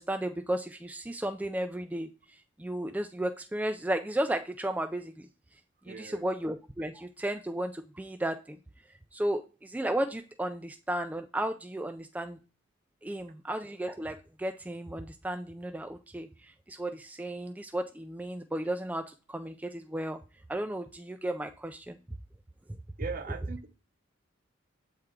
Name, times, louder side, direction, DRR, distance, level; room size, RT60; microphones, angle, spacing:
voice 1, 0.0-5.3 5.8-8.6 8.9-12.4 13.0-20.2 20.5-22.0, right 1 dB, 10° right, 0.3 m, -34 dB
voice 2, 5.8-6.3 23.0-23.7, right 5 dB, 45° right, 0.7 m, -39 dB
7.5 x 3.7 x 4.5 m
head